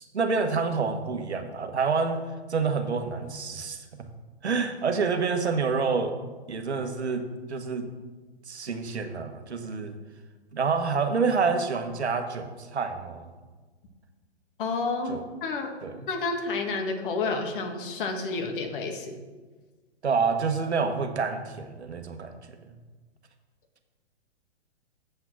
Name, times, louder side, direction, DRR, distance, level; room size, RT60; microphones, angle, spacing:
voice 1, 0.0-2.2 2.5-3.8 4.4-6.1 6.5-7.2 7.5-7.9 8.5-9.9 10.5-13.3 15.1-15.2 15.8-16.1 20.0-22.4, right 5 dB, 85° right, 7 dB, 1.2 m, -27 dB
voice 2, 14.6-15.7 16.1-19.2, left 3 dB, 50° left, 4 dB, 1.7 m, -30 dB
7.7 x 6.0 x 6.0 m, 1.3 s
hypercardioid pair, 125°, 33 cm